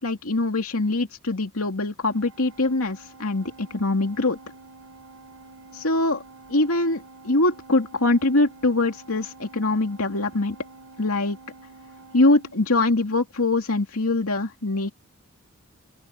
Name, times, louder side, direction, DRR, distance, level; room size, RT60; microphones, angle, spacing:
voice 1, 0.0-4.4 5.7-6.2 6.5-10.6 11.0-11.4 12.1-14.9, left 2 dB, 85° left, 2.5 m, -23 dB
Organ, 2.1-13.3, right 3 dB, 75° right, 6.5 m, -48 dB
open air
head